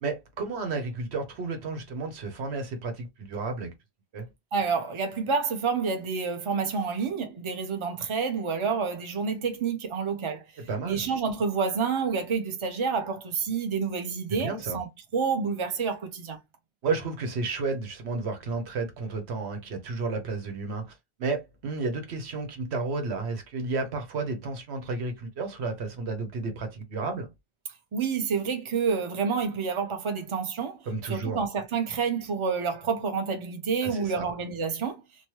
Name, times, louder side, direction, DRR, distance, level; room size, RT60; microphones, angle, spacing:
voice 1, 0.0-3.7 4.1-4.3 10.7-11.1 14.3-14.8 16.8-27.3 30.9-31.4 33.8-34.3, right 3 dB, 90° right, 1.1 m, -32 dB
voice 2, 4.5-14.9 15.1-16.4 27.9-30.8 31.1-35.0, right 5 dB, 35° right, 0.6 m, -29 dB
3.0 x 2.2 x 3.0 m
omnidirectional pair, 1.1 m